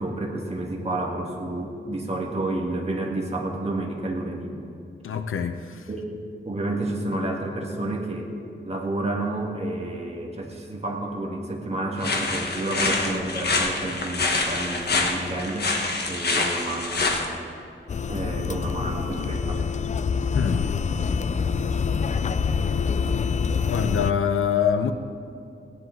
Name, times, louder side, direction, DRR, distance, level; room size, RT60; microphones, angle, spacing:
voice 1, 0.0-4.6 5.9-8.3 8.6-15.7 16.1-17.3 18.1-19.6, right 2 dB, 30° right, 0 dB, 1.8 m, -30 dB
voice 2, 5.0-5.9 20.3-20.8 23.7-24.9, left 7 dB, 90° left, 9 dB, 0.8 m, -25 dB
sound 1, 12.0-17.3, left 3 dB, 55° left, 1.4 m, -26 dB
sound 2, 17.9-24.1, left 5 dB, 35° left, 0.4 m, -26 dB
17.0 x 10.5 x 3.9 m, 2.5 s
wide cardioid pair, 115°, 20 cm